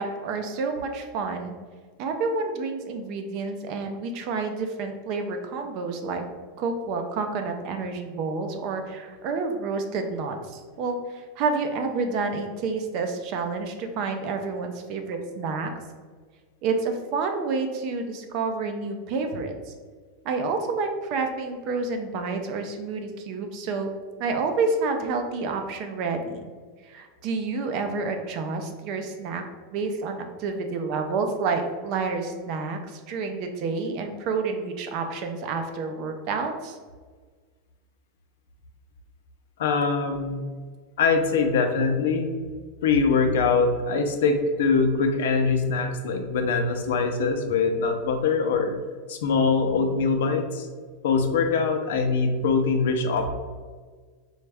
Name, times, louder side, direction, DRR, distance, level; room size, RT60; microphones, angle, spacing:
voice 1, 0.0-1.5 2.0-6.2 6.6-15.7 16.6-19.7 20.2-23.9 24.2-26.5 26.8-29.4 29.7-36.8, right 4 dB, 45° right, 5 dB, 0.5 m, -29 dB
voice 2, 39.6-40.4 41.0-42.3 42.8-48.8 49.1-50.7 51.0-53.3, left 4 dB, 80° left, 5 dB, 0.5 m, -23 dB
4.1 x 2.3 x 3.4 m, 1.5 s
supercardioid pair, 160°, 0 cm